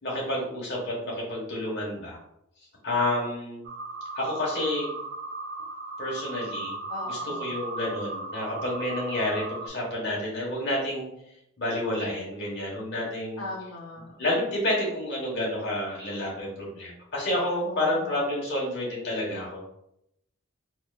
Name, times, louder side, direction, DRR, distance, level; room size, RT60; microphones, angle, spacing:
voice 1, 0.0-2.2 2.8-3.7 4.1-4.9 6.0-6.8 7.1-11.1 11.6-13.4 14.2-19.7, left 1 dB, 50° left, -4 dB, 1.3 m, -29 dB
sound 1, 3.6-9.7, right 2 dB, 45° right, 0.3 m, -36 dB
voice 2, 6.9-7.5 13.4-14.1 17.7-18.1, left 2 dB, 90° left, -2 dB, 0.6 m, -39 dB
4.3 x 2.6 x 2.3 m, 0.79 s
head